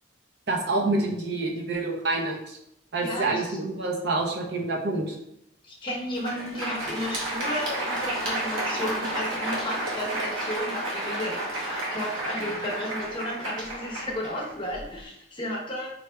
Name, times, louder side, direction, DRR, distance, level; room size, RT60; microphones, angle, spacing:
voice 1, 0.5-2.6 2.9-5.2, right 2 dB, 55° right, 0 dB, 0.7 m, -27 dB
voice 2, 3.0-3.6 5.6-15.9, left 1 dB, 25° left, -3 dB, 0.8 m, -33 dB
Crowd, 6.0-15.0, right 1 dB, 90° right, 1.0 m, -31 dB
3.9 x 3.3 x 2.2 m, 0.79 s
head